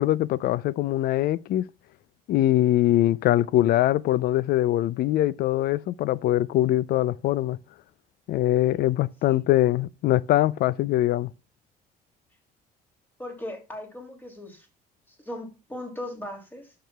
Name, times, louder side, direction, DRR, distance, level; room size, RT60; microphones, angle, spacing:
voice 1, 0.0-1.6 2.3-7.6 8.3-11.3, left 14 dB, 65° left, 0.4 m, -22 dB
voice 2, 13.2-14.7 15.1-16.7, left 1 dB, 10° left, 2.6 m, -38 dB
12.0 x 6.8 x 2.2 m
cardioid pair, 110°, 17 cm